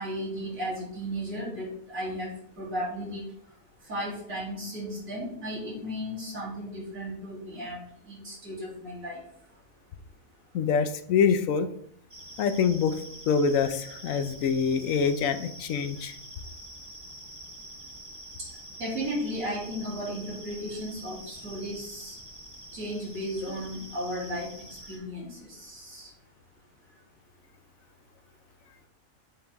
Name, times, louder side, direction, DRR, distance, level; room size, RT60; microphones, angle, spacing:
voice 1, 0.0-3.3 3.9-7.8 8.0-9.2 18.8-22.2 22.7-24.6 24.9-26.1, equal, 90° right, -6 dB, 3.2 m, -35 dB
voice 2, 10.5-11.7 12.4-13.0 13.3-16.1, left 6 dB, 80° left, 10 dB, 1.0 m, -25 dB
sound 1, 12.1-25.0, right 1 dB, 20° right, 1.2 m, -46 dB
7.8 x 4.4 x 3.5 m, 0.67 s
omnidirectional pair, 1.4 m